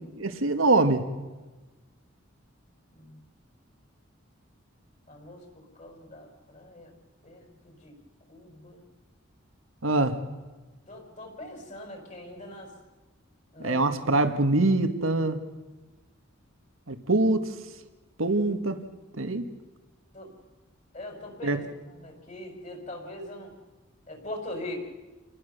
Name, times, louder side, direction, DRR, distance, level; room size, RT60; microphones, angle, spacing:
voice 1, 0.2-1.0 9.8-10.2 13.6-15.4 16.9-17.5 18.2-18.8 19.2-19.4 21.4-21.6, right 2 dB, 85° right, 8 dB, 1.9 m, -24 dB
voice 2, 5.1-5.4 5.8-6.9 7.2-7.9 8.3-8.8 10.9-12.7 13.5-13.9 20.1-20.3 20.9-23.5 24.1-24.8, left 1 dB, 40° left, 4 dB, 5.4 m, -41 dB
28.5 x 19.5 x 6.9 m, 1.2 s
head